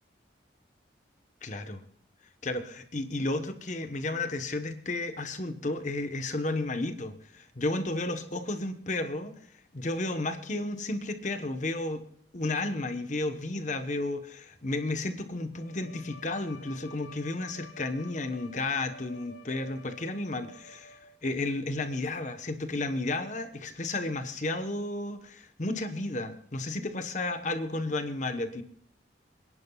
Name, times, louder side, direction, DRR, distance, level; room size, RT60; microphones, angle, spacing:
voice 1, 1.4-1.8 2.4-9.3 9.7-12.0 12.3-28.6, left 2 dB, 40° left, 8 dB, 1.1 m, -32 dB
Bowed string instrument, 15.5-21.3, left 2 dB, 80° left, 4.6 m, -51 dB
27.5 x 11.0 x 2.3 m, 0.67 s
head